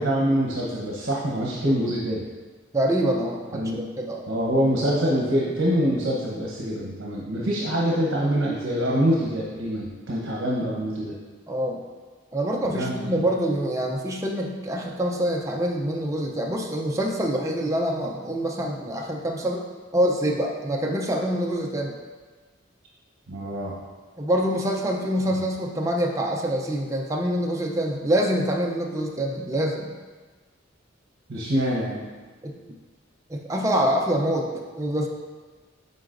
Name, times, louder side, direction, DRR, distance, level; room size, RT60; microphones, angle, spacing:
voice 1, 0.0-2.2 3.5-3.8 4.3-11.1 12.6-13.2 23.3-23.8 31.3-32.1, equal, 70° right, -4 dB, 0.9 m, -25 dB
voice 2, 2.7-3.7 4.0-4.3 11.5-11.8 12.3-19.7 19.9-21.9 24.2-29.9 32.4-32.6 33.3-34.5 34.8-35.1, right 1 dB, 15° right, -1 dB, 0.5 m, -25 dB
9.7 x 3.9 x 2.5 m, 1.4 s
head